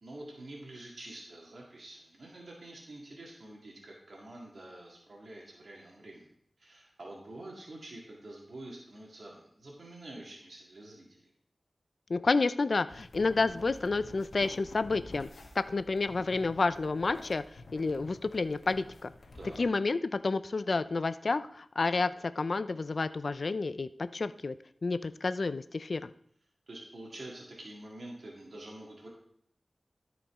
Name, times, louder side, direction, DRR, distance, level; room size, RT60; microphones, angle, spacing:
voice 1, 0.0-6.3 6.6-11.3 19.3-19.7 26.7-29.1, right 1 dB, 70° right, -2 dB, 1.9 m, -47 dB
voice 2, 12.1-15.3 15.6-19.1 19.6-24.5 24.8-26.1, left 3 dB, 60° left, 14 dB, 0.4 m, -30 dB
sound 1, 12.9-19.7, left 2 dB, 85° left, 1.2 m, -50 dB
13.0 x 5.2 x 3.6 m, 0.66 s
wide cardioid pair, 75°, 0 cm